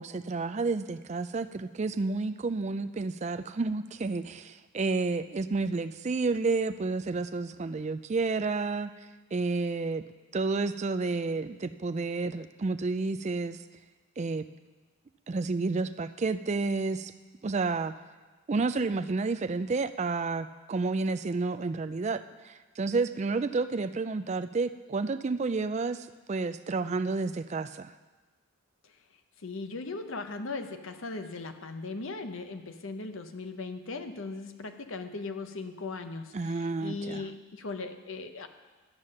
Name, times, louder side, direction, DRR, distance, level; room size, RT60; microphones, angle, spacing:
voice 1, 0.0-8.9 9.3-10.0 10.3-13.6 14.2-14.5 15.3-17.1 17.4-17.9 18.5-27.9 36.3-37.3, right 3 dB, 30° right, 10 dB, 0.3 m, -30 dB
voice 2, 29.4-38.5, left 3 dB, 60° left, 7 dB, 0.8 m, -38 dB
12.0 x 7.4 x 6.5 m, 1.3 s
head